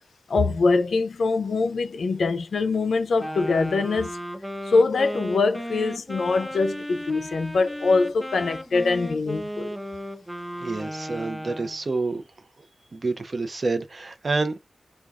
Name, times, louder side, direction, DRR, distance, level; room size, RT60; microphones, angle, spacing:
voice 1, 0.3-4.1 4.7-9.7, left 3 dB, 85° left, 0.4 m, -23 dB
Wind instrument woodwind instrument, 3.2-11.8, equal, 5° right, 0.5 m, -35 dB
voice 2, 10.6-12.2 12.9-14.6, right 3 dB, 50° right, 0.6 m, -28 dB
3.4 x 2.2 x 2.3 m
wide cardioid pair, 70°, 0 cm